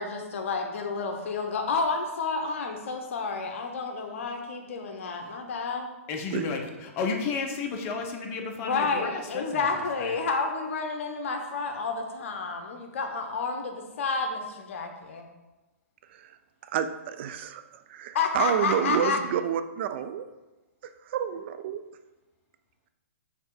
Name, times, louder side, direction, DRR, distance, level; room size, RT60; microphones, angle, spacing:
voice 1, 0.0-5.9 8.6-15.3 18.1-19.2, left 4 dB, 60° left, 4 dB, 1.0 m, -30 dB
voice 2, 6.1-9.7 10.0-10.1, left 4 dB, 30° left, 2 dB, 1.0 m, -32 dB
voice 3, 16.6-20.3 21.0-21.8, right 9 dB, 50° right, 9 dB, 0.5 m, -29 dB
6.4 x 3.4 x 4.8 m, 1.1 s
hypercardioid pair, 130°, 8 cm